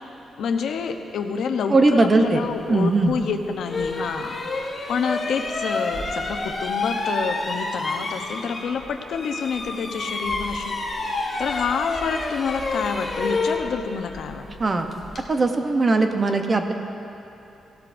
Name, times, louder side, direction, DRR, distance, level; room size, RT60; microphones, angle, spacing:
voice 1, 0.4-10.7 11.4-14.4, left 6 dB, 70° left, 5 dB, 0.7 m, -28 dB
voice 2, 1.7-3.2 14.6-14.9 15.3-16.7, right 3 dB, 25° right, 5 dB, 0.7 m, -20 dB
sound 1, 3.0-3.2 3.7-8.8 9.1-15.3, left 3 dB, 30° left, 1.3 m, -29 dB
18.0 x 12.5 x 2.6 m, 2.8 s
wide cardioid pair, 160°, 0 cm